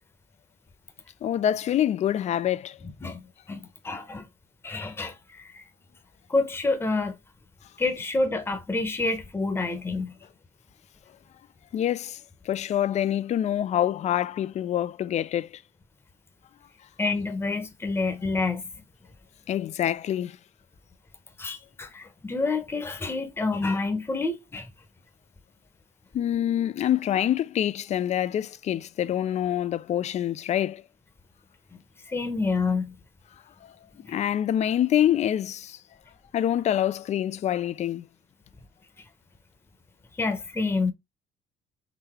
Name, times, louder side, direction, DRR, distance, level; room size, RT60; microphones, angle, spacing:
voice 1, 1.2-2.8 11.7-15.6 19.5-20.4 26.1-30.8 33.6-33.7 34.1-35.8 36.3-38.1, left 11 dB, 40° left, 0.4 m, -26 dB
voice 2, 3.0-4.3 4.6-5.6 6.3-7.2 7.8-10.2 17.0-18.6 21.4-24.7 32.0-32.9 34.0-34.2 40.2-40.9, left 3 dB, 15° left, 0.8 m, -28 dB
4.1 x 2.8 x 4.2 m
cardioid pair, 110°, 17 cm